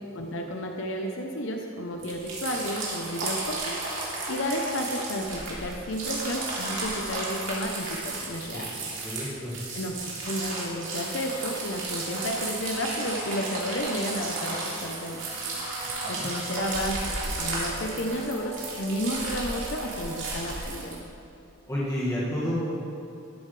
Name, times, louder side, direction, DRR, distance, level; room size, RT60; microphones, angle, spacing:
voice 1, 0.0-8.7 9.7-15.2 16.1-21.0, equal, 60° left, 2 dB, 0.8 m, -32 dB
sound 1, 2.0-21.0, right 2 dB, 60° right, 3.1 m, -34 dB
voice 2, 9.0-9.6 15.8-16.3 21.7-22.5, equal, 15° left, -9 dB, 2.0 m, -31 dB
sound 2, 12.0-20.3, right 2 dB, 25° right, 2.2 m, -44 dB
13.5 x 12.0 x 3.3 m, 2.7 s
head